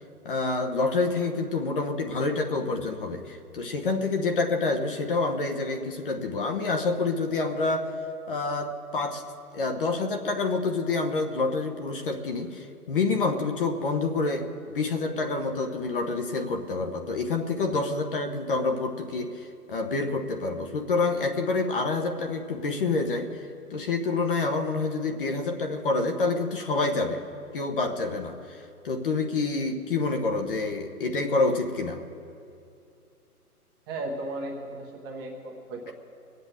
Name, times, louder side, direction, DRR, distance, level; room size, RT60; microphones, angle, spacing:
voice 1, 0.2-7.9 8.3-9.2 9.5-27.2 27.5-32.0, left 3 dB, 35° left, 5 dB, 1.1 m, -27 dB
voice 2, 33.9-35.9, right 2 dB, 15° right, 0 dB, 0.9 m, -35 dB
20.0 x 8.1 x 7.9 m, 2.5 s
figure-of-eight pair, 145°, 46 cm